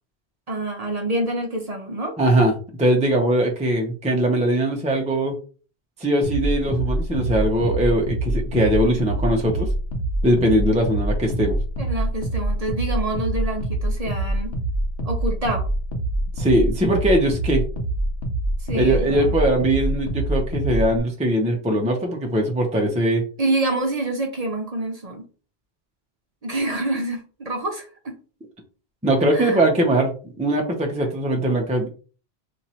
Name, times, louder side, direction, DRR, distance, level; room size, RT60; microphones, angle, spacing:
voice 1, 0.5-2.1 11.8-14.5 15.0-15.7 18.6-19.3 23.4-25.3 26.4-28.2 29.3-29.6, right 2 dB, 40° right, 2 dB, 0.7 m, -27 dB
voice 2, 2.2-2.5 2.8-5.4 6.0-9.7 10.2-11.6 16.4-17.6 18.7-23.2 29.0-31.9, right 1 dB, 10° right, 1 dB, 0.5 m, -21 dB
sound 1, 6.2-21.0, right 1 dB, 70° left, 0.9 m, -25 dB
2.9 x 2.6 x 4.2 m, 0.38 s
omnidirectional pair, 1.1 m